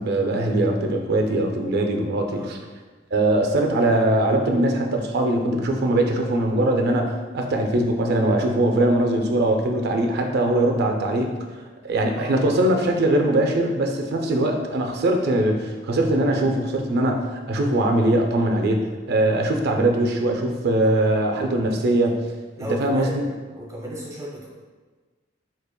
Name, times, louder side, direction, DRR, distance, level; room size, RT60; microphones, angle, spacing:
voice 1, 0.0-2.6 3.1-22.2 22.8-23.3, right 1 dB, 55° right, 3 dB, 0.4 m, -21 dB
voice 2, 22.6-24.5, equal, 15° right, -4 dB, 0.8 m, -35 dB
4.3 x 2.8 x 2.2 m, 1.4 s
head